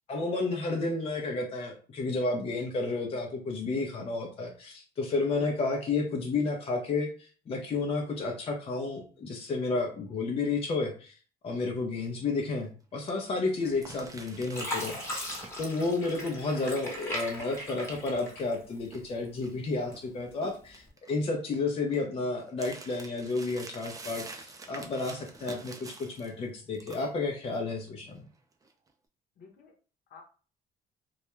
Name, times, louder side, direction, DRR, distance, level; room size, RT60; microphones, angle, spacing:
voice 1, 0.1-11.1 11.4-28.3, left 3 dB, 35° left, 1 dB, 0.5 m, -31 dB
sound 1, 12.0-12.3 12.5-12.6 13.1-13.2 13.6-15.7 16.1-20.0 20.3-26.5 26.7-27.6 27.9-28.2 28.6-28.9, right 3 dB, 20° right, 0.4 m, -47 dB
Fill (with liquid), 13.8-14.2 14.5-18.9 19.4-20.2 20.7-20.9, left 1 dB, 15° left, 0.9 m, -38 dB
voice 2, 29.4-29.7 30.1-30.2, left 5 dB, 65° left, 2 dB, 0.8 m, -50 dB
2.3 x 2.1 x 2.9 m, 0.39 s
cardioid pair, 110°, 17 cm